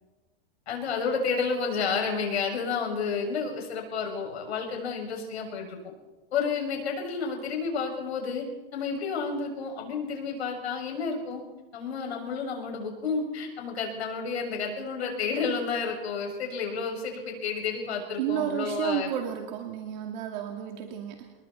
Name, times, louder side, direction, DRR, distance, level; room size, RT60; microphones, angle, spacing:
voice 1, 0.7-5.8 6.3-8.4 8.7-11.4 11.7-19.1, left 5 dB, 85° left, 2 dB, 6.8 m, -30 dB
voice 2, 18.2-21.3, right 11 dB, 45° right, 2 dB, 2.3 m, -32 dB
29.0 x 20.5 x 4.4 m, 1.2 s
supercardioid pair, 170°, 31 cm